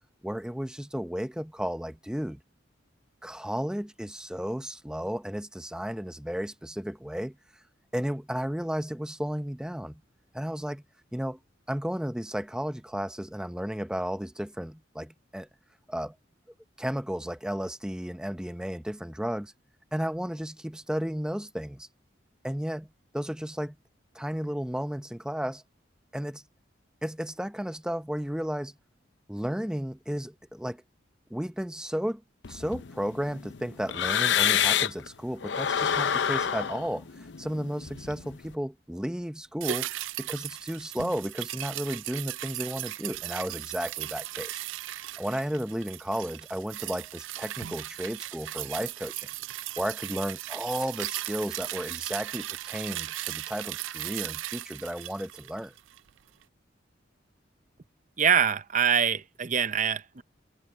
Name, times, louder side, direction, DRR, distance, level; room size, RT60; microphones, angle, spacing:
voice 1, 0.2-2.4 3.2-7.4 7.9-10.0 10.3-10.8 11.1-11.4 11.7-15.5 15.9-16.1 16.8-19.5 19.9-21.9 22.4-22.9 23.1-23.8 24.1-25.6 26.1-26.4 27.0-28.7 29.3-30.8 31.3-32.2 32.5-39.9 40.2-44.6 45.2-49.3 49.8-55.7, equal, 5° right, 0.7 m, -33 dB
sound 1, 32.4-35.1 35.4-38.5, left 9 dB, 70° left, 0.6 m, -28 dB
sound 2, 39.6-56.1 56.4-56.5, right 15 dB, 90° right, 0.4 m, -37 dB
voice 2, 58.2-60.2, right 7 dB, 40° right, 0.7 m, -24 dB
head